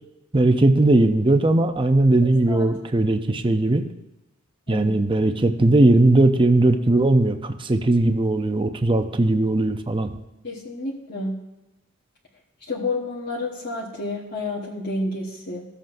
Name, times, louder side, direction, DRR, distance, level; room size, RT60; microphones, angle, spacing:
voice 1, 0.3-3.9 4.7-10.1, right 2 dB, 25° right, 7 dB, 0.6 m, -19 dB
voice 2, 10.4-11.3 12.6-15.7, left 2 dB, 50° left, -4 dB, 1.3 m, -30 dB
15.0 x 7.6 x 2.6 m, 0.96 s
head